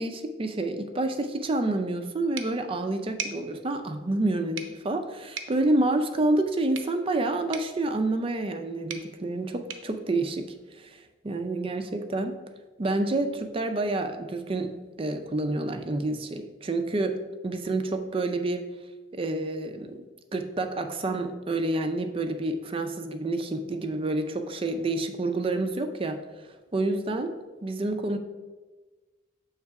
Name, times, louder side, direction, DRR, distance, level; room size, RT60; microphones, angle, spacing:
voice 1, 0.0-12.4 12.8-18.6 19.1-20.0 20.3-26.2 26.7-27.4 27.6-28.2, right 2 dB, 30° right, 7 dB, 0.4 m, -28 dB
sound 1, 2.3-11.0, right 6 dB, 70° right, 0.6 m, -43 dB
6.9 x 3.2 x 4.6 m, 1.3 s
head